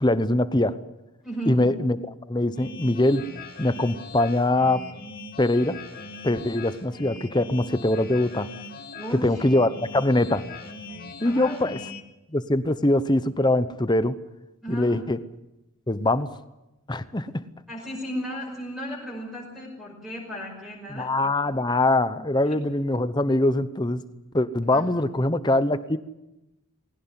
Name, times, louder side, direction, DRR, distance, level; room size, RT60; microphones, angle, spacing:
voice 1, 0.0-0.7 1.5-2.0 2.3-3.2 3.6-4.8 5.4-5.7 6.2-8.5 9.1-10.4 11.2-11.8 12.3-14.2 14.7-15.2 15.9-16.3 16.9-17.3 20.9-24.0 24.3-26.0, left 1 dB, 20° left, 13 dB, 0.8 m, -23 dB
voice 2, 1.2-1.7 9.0-9.4 11.2-11.6 14.6-15.0 17.7-21.2 22.4-22.6 24.6-25.0, equal, ahead, -8 dB, 5.6 m, -35 dB
sound 1, 2.5-12.0, left 3 dB, 40° left, 2.7 m, -41 dB
20.5 x 17.0 x 9.8 m, 0.97 s
head